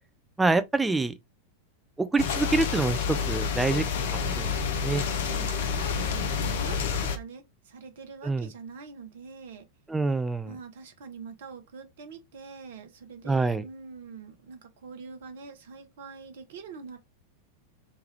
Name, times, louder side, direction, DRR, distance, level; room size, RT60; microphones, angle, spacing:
voice 1, 0.4-1.1 2.0-3.8 4.1-5.0 8.2-8.5 9.9-10.5 13.3-13.6, right 3 dB, 10° right, 0.3 m, -26 dB
sound 1, 2.2-7.2, left 6 dB, 55° left, 0.5 m, -29 dB
voice 2, 5.2-9.7 10.4-17.0, right 5 dB, 55° right, 0.6 m, -44 dB
3.1 x 2.3 x 2.8 m
figure-of-eight pair, 90°, 0 cm